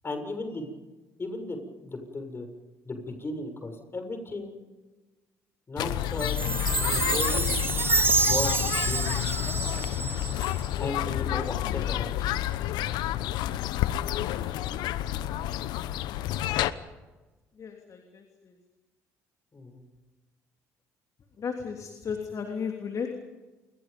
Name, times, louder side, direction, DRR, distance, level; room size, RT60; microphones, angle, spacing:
voice 1, 0.0-0.7 1.2-2.5 2.9-4.5 5.7-7.6 8.1-9.3 10.8-12.1 19.5-19.8, left 2 dB, 30° left, 6 dB, 7.2 m, -36 dB
sound 1, 5.8-16.7, left 13 dB, 70° left, 1.0 m, -29 dB
Chime, 6.2-10.7, right 4 dB, 30° right, 3.9 m, -28 dB
voice 2, 17.6-18.5 21.4-23.1, left 6 dB, 50° left, 3 dB, 3.2 m, -35 dB
29.0 x 22.5 x 5.4 m, 1.2 s
hypercardioid pair, 55°, 7 cm